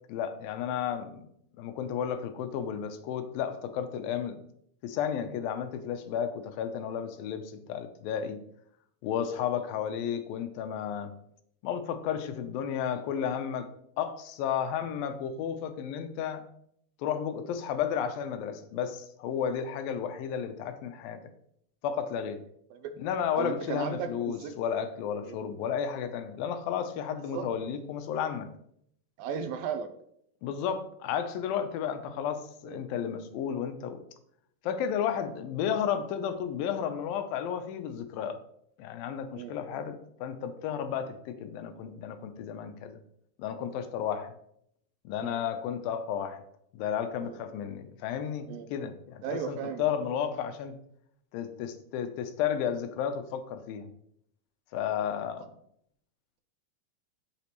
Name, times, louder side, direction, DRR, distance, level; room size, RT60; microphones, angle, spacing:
voice 1, 0.1-1.3 1.6-4.4 4.8-8.4 9.0-11.1 11.6-13.7 14.0-16.4 17.0-21.2 21.8-22.4 23.0-28.5 30.4-34.0 34.6-38.4 38.8-43.0 43.4-44.3 45.1-46.4 46.7-50.8 51.3-53.9 54.7-55.5, left 8 dB, 80° left, 8 dB, 2.5 m, -33 dB
voice 2, 23.4-24.6 25.2-25.4 27.3-27.5 29.2-29.9 32.6-32.9 39.3-39.9 45.2-45.4 47.2-47.4 48.5-48.7 49.2-50.0, right 7 dB, 85° right, 8 dB, 2.4 m, -36 dB
8.3 x 7.5 x 3.1 m, 0.70 s
omnidirectional pair, 4.1 m